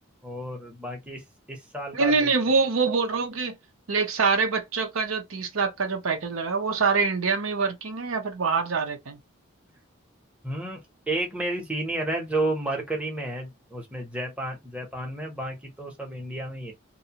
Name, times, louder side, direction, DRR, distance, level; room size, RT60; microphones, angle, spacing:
voice 1, 0.2-2.3 10.4-16.7, right 2 dB, 5° right, 0.7 m, -32 dB
voice 2, 1.9-3.6 3.9-9.2, right 4 dB, 80° right, 0.7 m, -25 dB
2.6 x 2.2 x 2.8 m
head